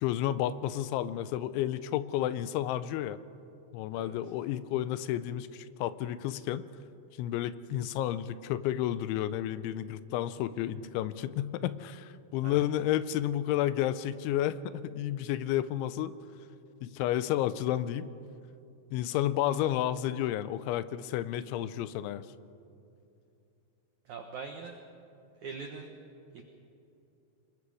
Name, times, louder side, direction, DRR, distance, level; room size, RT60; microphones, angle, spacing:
voice 1, 0.0-3.2 3.7-6.7 7.2-16.1 16.8-18.1 18.9-22.2, left 12 dB, 85° left, 14 dB, 3.0 m, -31 dB
voice 2, 3.9-4.3 12.4-12.7 24.0-24.8 25.4-26.0 26.3-26.4, right 5 dB, 90° right, 4 dB, 1.7 m, -42 dB
26.0 x 21.0 x 4.9 m, 2.8 s
omnidirectional pair, 5.3 m